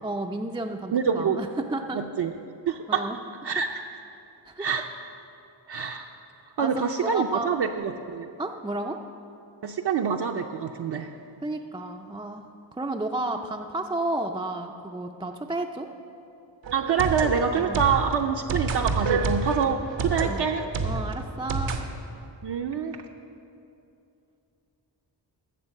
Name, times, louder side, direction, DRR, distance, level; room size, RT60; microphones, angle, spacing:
voice 1, 0.0-2.0 2.9-3.2 4.5-4.7 6.6-6.7 7.0-7.5 8.4-9.0 11.4-12.5 12.8-15.9 17.5-17.8 20.3-20.5 20.8-21.8, right 2 dB, 10° right, 2 dB, 0.4 m, -32 dB
voice 2, 0.9-1.4 1.9-2.3 2.7-3.0 3.4-3.8 4.6-4.9 5.7-6.1 6.6-8.3 9.6-11.1 16.7-20.6 22.4-23.0, right 6 dB, 60° right, 2 dB, 0.6 m, -26 dB
sound 1, 16.6-21.8, right 4 dB, 85° right, 1.0 m, -28 dB
11.5 x 7.5 x 6.5 m, 2.7 s
wide cardioid pair, 115°, 45 cm